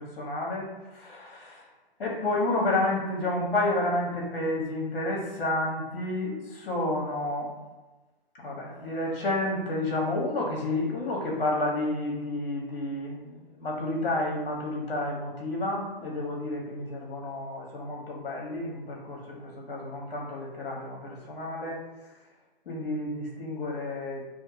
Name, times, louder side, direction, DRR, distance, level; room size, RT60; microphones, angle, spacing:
voice 1, 0.0-1.7 2.0-7.5 8.4-21.8 22.7-24.2, left 2 dB, 65° left, -2 dB, 0.9 m, -30 dB
2.7 x 2.3 x 2.7 m, 1.1 s
hypercardioid pair, 135°, 30 cm